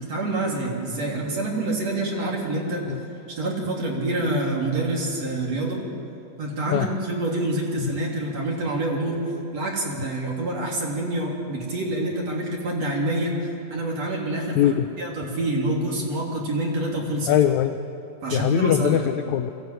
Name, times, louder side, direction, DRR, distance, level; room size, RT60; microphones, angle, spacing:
voice 1, 0.0-2.8 3.4-5.8 6.4-9.2 9.5-13.4 13.7-14.6 15.0-17.3 18.2-19.0, right 1 dB, 50° right, -2 dB, 4.2 m, -26 dB
voice 2, 14.5-14.9 17.3-17.8 18.3-19.5, left 11 dB, 80° left, 8 dB, 1.6 m, -21 dB
22.0 x 16.5 x 8.9 m, 3.0 s
omnidirectional pair, 4.0 m